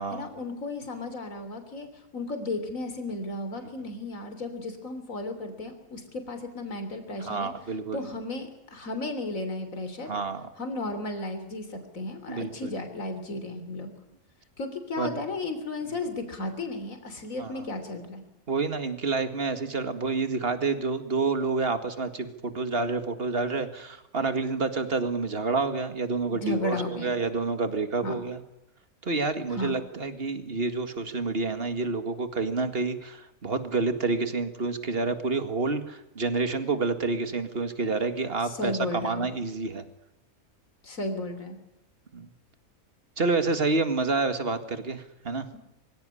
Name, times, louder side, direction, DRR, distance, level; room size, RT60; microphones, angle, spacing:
voice 1, 0.1-7.5 7.9-10.1 10.6-13.9 14.6-18.2 26.3-27.1 28.0-28.2 29.5-29.8 38.4-39.3 40.8-41.6, left 2 dB, 65° left, 8 dB, 3.7 m, -34 dB
voice 2, 7.2-8.0 10.1-10.5 12.3-12.7 15.0-15.2 17.4-17.6 18.5-28.4 29.0-39.8 42.1-42.3 43.2-45.5, right 3 dB, 40° right, 9 dB, 2.2 m, -28 dB
24.0 x 16.5 x 10.0 m, 0.88 s
omnidirectional pair, 1.5 m